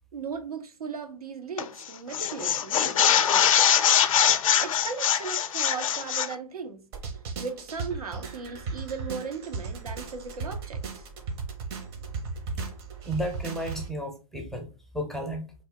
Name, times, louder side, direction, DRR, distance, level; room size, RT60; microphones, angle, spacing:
voice 1, 0.1-3.5 4.6-6.8 7.4-11.1, right 5 dB, 75° right, 0.7 m, -37 dB
sound 1, 1.6-1.8 2.1-6.3, left 9 dB, 60° left, 0.4 m, -22 dB
sound 2, 6.9-13.9, right 4 dB, 40° right, 0.9 m, -36 dB
voice 2, 13.0-14.7 14.9-15.4, right 1 dB, ahead, 0.4 m, -32 dB
3.3 x 2.2 x 4.0 m
figure-of-eight pair, 115°, 19 cm